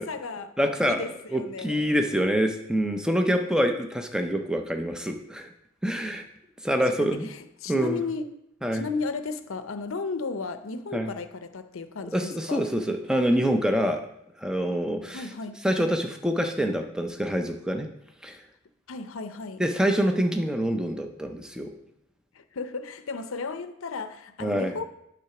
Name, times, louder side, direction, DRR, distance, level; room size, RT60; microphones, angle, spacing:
voice 1, 0.0-2.0 7.0-8.3 8.7-12.7 15.1-15.6 18.9-19.6 22.3-24.9, left 4 dB, 75° left, 0.6 m, -34 dB
voice 2, 0.6-1.0 1.3-5.5 5.8-6.2 6.6-7.3 7.7-8.0 8.6-8.8 10.9-11.1 12.1-14.0 14.4-15.2 15.6-17.9 18.2-18.4 19.6-21.7 24.4-24.7, equal, 5° right, 0.5 m, -26 dB
8.6 x 3.8 x 5.9 m
head